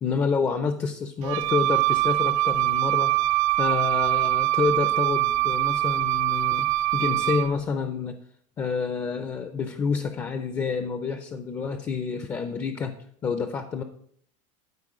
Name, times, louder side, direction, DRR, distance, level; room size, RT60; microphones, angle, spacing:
voice 1, 0.0-3.1 3.6-6.7 6.9-8.2 8.6-12.9 13.2-13.8, left 5 dB, 20° left, 8 dB, 0.4 m, -28 dB
Wind instrument woodwind instrument, 1.2-7.5, right 16 dB, 75° right, 0.5 m, -23 dB
12.5 x 4.6 x 4.8 m, 0.64 s
cardioid pair, 170°, 17 cm